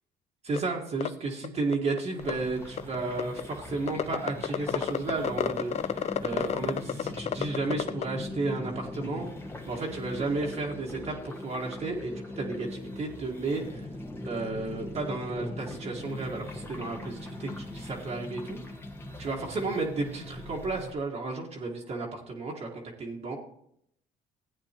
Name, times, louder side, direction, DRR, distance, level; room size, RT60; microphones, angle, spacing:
voice 1, 0.4-9.3 9.7-13.9 14.2-18.6 19.2-23.4, right 3 dB, 40° right, -2 dB, 1.6 m, -33 dB
sound 1, 0.6-0.7 1.0-1.1 1.4-1.5 1.7-2.3 2.8-3.4 3.9-8.0, left 9 dB, 40° left, 0.5 m, -29 dB
sound 2, 2.2-20.9, left 1 dB, 15° left, 1.2 m, -40 dB
16.0 x 8.9 x 2.9 m, 0.72 s
cardioid pair, 110°, 17 cm